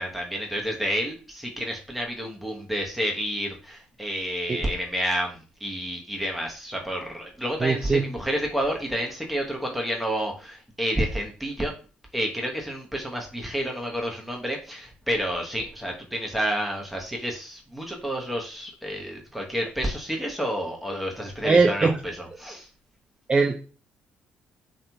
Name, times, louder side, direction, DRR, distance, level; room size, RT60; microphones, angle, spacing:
voice 1, 0.0-11.7 12.1-22.7, equal, ahead, 0 dB, 0.9 m, -30 dB
voice 2, 7.6-8.0 21.4-22.0 23.3-23.5, right 4 dB, 25° right, 3 dB, 0.3 m, -20 dB
2.8 x 2.7 x 2.2 m, 0.37 s
hypercardioid pair, 50°, 4 cm